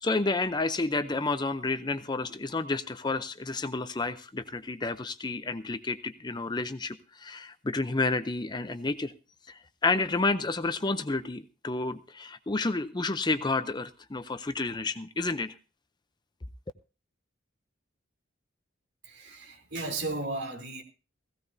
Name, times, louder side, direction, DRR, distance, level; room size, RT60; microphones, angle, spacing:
voice 1, 0.0-9.1 9.5-15.5, left 3 dB, 20° left, 0.6 m, -30 dB
voice 2, 19.0-20.8, right 2 dB, 60° right, 3.3 m, -35 dB
17.0 x 16.5 x 2.7 m
head